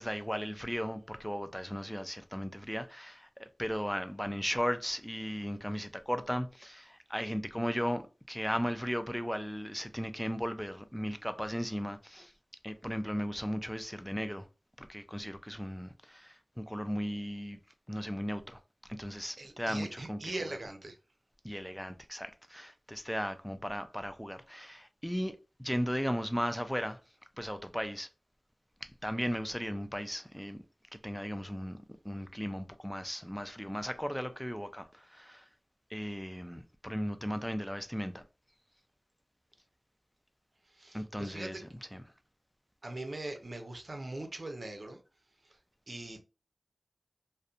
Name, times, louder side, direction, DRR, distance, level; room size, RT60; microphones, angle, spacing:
voice 1, 0.0-8.0 8.3-12.3 12.6-14.5 14.8-17.6 17.9-18.6 19.0-20.6 21.4-27.0 27.4-28.1 28.8-30.6 30.9-31.8 32.0-35.5 35.9-38.2 40.9-41.6 41.9-42.0, equal, 5° left, 0.3 m, -36 dB
voice 2, 19.4-21.0 40.7-41.6 42.8-45.0 45.4-45.6 45.9-46.2, right 2 dB, 50° right, 0.6 m, -41 dB
2.6 x 2.1 x 2.4 m
wide cardioid pair, 55°, 0 cm